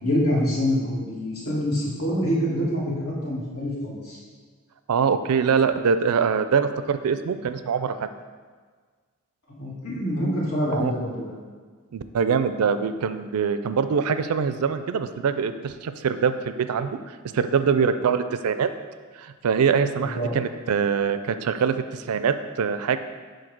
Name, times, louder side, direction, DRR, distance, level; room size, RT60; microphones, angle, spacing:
voice 1, 0.0-4.2 9.5-11.3 20.0-20.3, equal, 70° left, -6 dB, 2.1 m, -26 dB
voice 2, 4.9-8.1 10.7-10.9 11.9-16.9 17.3-18.7 19.2-23.0, right 6 dB, 85° right, 10 dB, 0.4 m, -23 dB
7.8 x 2.7 x 6.0 m, 1.5 s
head